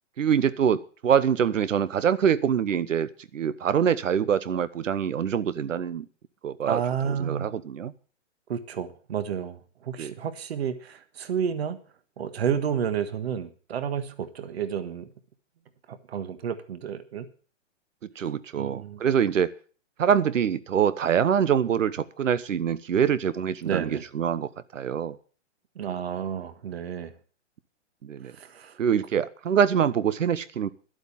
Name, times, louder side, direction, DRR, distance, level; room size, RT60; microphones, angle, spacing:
voice 1, 0.2-6.1 6.4-6.8 7.1-7.9 10.0-10.1 18.2-19.5 20.0-25.2 28.0-28.3 28.8-30.7, right 8 dB, 90° right, 17 dB, 1.1 m, -25 dB
voice 2, 6.7-7.5 8.5-11.8 12.2-15.1 15.9-17.3 18.5-19.0 23.6-24.0 25.7-27.1 28.2-28.8, right 8 dB, 55° right, 12 dB, 1.6 m, -31 dB
12.0 x 8.1 x 7.3 m, 0.41 s
hypercardioid pair, 170°, 37 cm